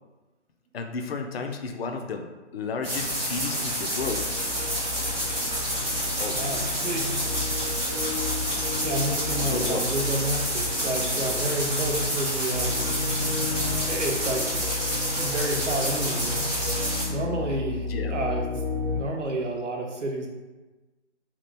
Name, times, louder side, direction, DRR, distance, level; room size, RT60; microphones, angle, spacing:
voice 1, 0.7-2.3 2.5-4.3 6.2-6.6 9.4-9.9 17.9-18.1, left 4 dB, 55° left, 4 dB, 0.4 m, -32 dB
sound 1, 2.8-17.0, equal, 5° right, 0.6 m, -28 dB
sound 2, 4.0-19.0, left 4 dB, 40° right, 0.9 m, -34 dB
voice 2, 6.3-7.1 8.8-12.8 13.8-14.6 15.2-16.5 17.1-18.5 18.9-20.3, right 1 dB, 75° right, 1 dB, 0.8 m, -30 dB
2.9 x 2.4 x 3.3 m, 1.2 s
figure-of-eight pair, 145°, 36 cm